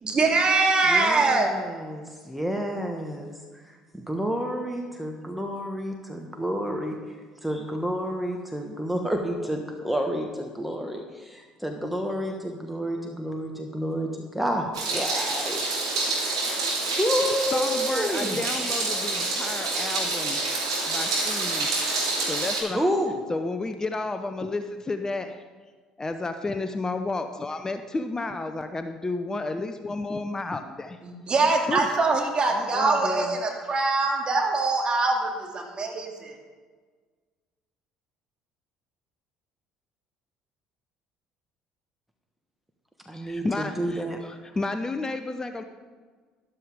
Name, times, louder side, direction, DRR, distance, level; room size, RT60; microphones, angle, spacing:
voice 1, 0.1-1.5 31.0-36.3, right 3 dB, 35° right, 1 dB, 2.7 m, -23 dB
voice 2, 0.9-18.4 22.7-23.2 32.5-33.4 43.0-44.2, equal, 5° right, 2 dB, 1.5 m, -30 dB
Meow, 14.7-22.6, right 3 dB, 80° right, 2.7 m, -27 dB
voice 3, 17.5-20.4 20.9-21.8 22.3-22.8 23.3-25.4 26.0-31.0 31.7-32.0 43.1-45.6, left 3 dB, 20° left, 8 dB, 0.8 m, -31 dB
13.5 x 12.0 x 3.6 m, 1.4 s
figure-of-eight pair, 55°, 3 cm